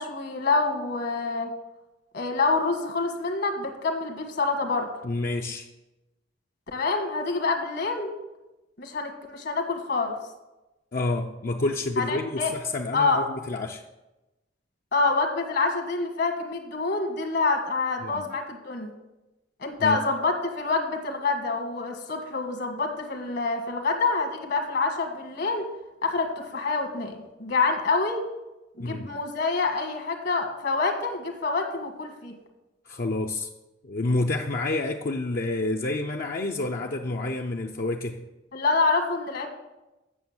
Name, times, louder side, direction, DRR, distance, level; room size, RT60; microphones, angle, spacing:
voice 1, 0.0-1.5 2.1-4.9 6.7-8.1 8.8-10.1 12.0-12.5 12.9-13.2 14.9-18.9 19.6-25.6 26.0-28.2 28.8-32.3 38.5-39.5, left 3 dB, 65° left, 3 dB, 1.6 m, -26 dB
voice 2, 5.0-5.7 10.9-13.8 18.0-18.2 19.8-20.0 28.8-29.1 32.9-33.5 33.8-38.2, left 2 dB, 50° left, 2 dB, 0.6 m, -29 dB
8.3 x 6.7 x 7.2 m, 1.0 s
head